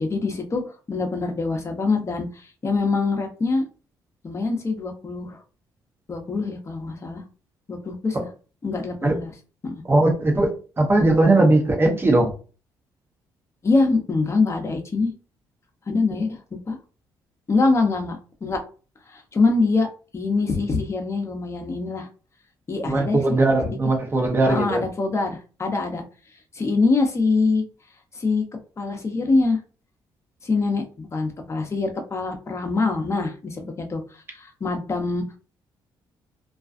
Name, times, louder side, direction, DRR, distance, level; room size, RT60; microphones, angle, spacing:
voice 1, 0.0-3.6 4.2-5.4 6.1-7.2 7.7-8.2 8.6-9.3 9.6-9.7 13.6-15.1 15.9-16.4 16.7-16.8 17.5-18.6 19.1-19.9 20.1-22.1 22.7-23.2 23.7-23.8 24.4-26.0 26.5-27.6 28.1-28.4 28.8-29.6 30.4-35.4, left 3 dB, 35° left, 0.7 m, -24 dB
voice 2, 9.9-12.3 22.8-24.8, right 2 dB, 25° right, 0.8 m, -19 dB
2.4 x 2.2 x 2.5 m
cardioid pair, 75°, 9 cm